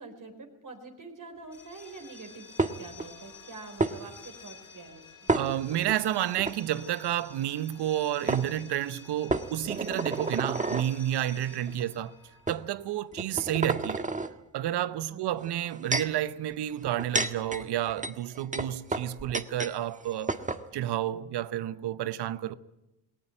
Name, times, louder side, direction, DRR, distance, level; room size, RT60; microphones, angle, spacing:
voice 1, 0.0-2.5 2.8-5.0 15.1-15.4, right 3 dB, 45° right, 4.3 m, -46 dB
sound 1, 1.4-13.1, left 4 dB, 45° left, 4.8 m, -50 dB
sound 2, 2.6-3.1 3.8-3.9 5.3-6.0 6.4-6.6 7.8-7.9 8.3-8.5 9.3-10.9 11.7-11.8 12.5-12.6 13.1-14.3 15.4-16.2 16.8-19.8 20.0-20.1 20.3-20.6, right 2 dB, 15° right, 1.6 m, -30 dB
voice 2, 5.3-12.2 12.5-14.1 14.5-20.4 20.7-22.6, right 12 dB, 60° right, 1.0 m, -30 dB
19.5 x 19.0 x 9.1 m
hypercardioid pair, 50°, 45 cm